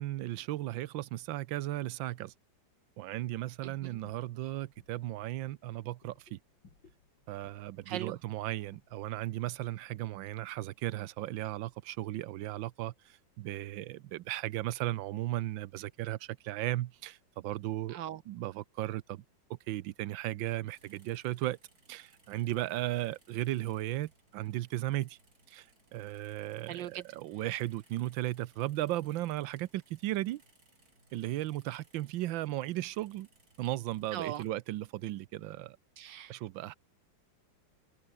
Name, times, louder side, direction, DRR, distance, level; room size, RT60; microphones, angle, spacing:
voice 1, 0.0-2.3 3.0-6.4 7.3-18.0 18.3-19.2 19.5-21.6 21.9-25.2 25.5-25.7 25.9-30.4 31.1-33.3 33.6-35.8 36.3-36.7, right 15 dB, 90° right, 1.4 m, -36 dB
voice 2, 3.6-4.0 7.9-8.2 17.9-18.2 26.7-27.0 34.1-34.4 36.0-36.4, right 11 dB, 75° right, 1.4 m, -39 dB
sound 1, 3.8-9.3, left 4 dB, 75° left, 4.6 m, -64 dB
sound 2, 20.7-34.5, right 3 dB, 50° right, 5.6 m, -67 dB
omnidirectional pair, 2.1 m